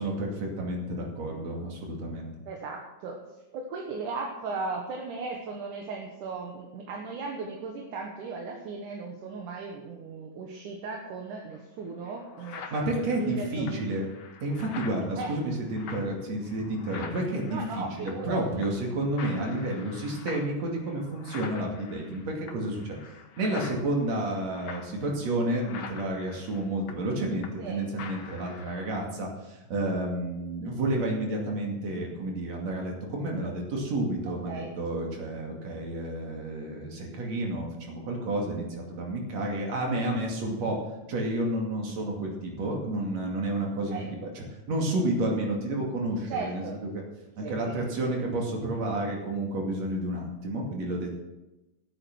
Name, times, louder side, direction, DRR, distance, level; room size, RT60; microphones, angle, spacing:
voice 1, 0.0-2.3 12.7-14.1 14.4-23.0 23.4-40.8 41.1-46.9 47.4-51.2, right 1 dB, 55° right, 0 dB, 3.6 m, -30 dB
voice 2, 2.5-3.2 3.5-13.9 15.2-15.3 17.5-18.7 27.6-27.8 34.3-34.7 43.9-44.1 46.3-46.8 47.4-47.8, right 4 dB, 70° right, 1 dB, 2.7 m, -37 dB
sound 1, 11.5-11.6 12.0-18.4 18.6-18.9 19.2-27.7 28.0-29.0, left 5 dB, 60° left, 2.2 m, -45 dB
15.0 x 8.8 x 6.1 m, 1.0 s
omnidirectional pair, 3.8 m